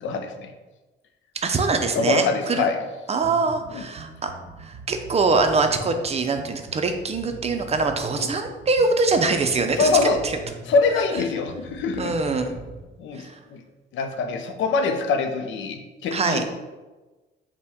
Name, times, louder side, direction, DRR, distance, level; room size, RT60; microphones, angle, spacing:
voice 1, 0.0-0.5 2.0-2.8 3.7-3.8 8.2-8.3 9.8-10.2 10.7-12.1 13.0-13.6 13.9-16.4, left 4 dB, 70° left, 6 dB, 0.5 m, -24 dB
voice 2, 1.3-2.7 3.1-4.3 4.6-9.9 10.2-10.3 12.0-12.5 13.1-13.4 16.1-16.4, right 3 dB, 30° right, 6 dB, 0.5 m, -23 dB
sound 1, 3.2-12.8, right 5 dB, 75° right, 0.6 m, -42 dB
5.6 x 2.2 x 3.5 m, 1.2 s
cardioid pair, 90°, 20 cm